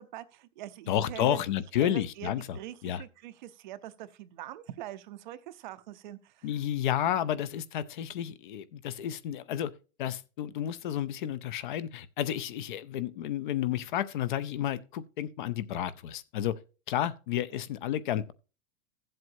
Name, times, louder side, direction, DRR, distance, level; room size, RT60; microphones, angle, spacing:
voice 1, 0.0-1.4 1.8-6.5 17.5-17.6, right 13 dB, 35° right, 0.6 m, -43 dB
voice 2, 0.9-3.0 6.4-9.7 10.0-16.5 16.9-18.3, left 11 dB, 40° left, 0.6 m, -31 dB
15.0 x 7.7 x 2.6 m
supercardioid pair, 170°, 41 cm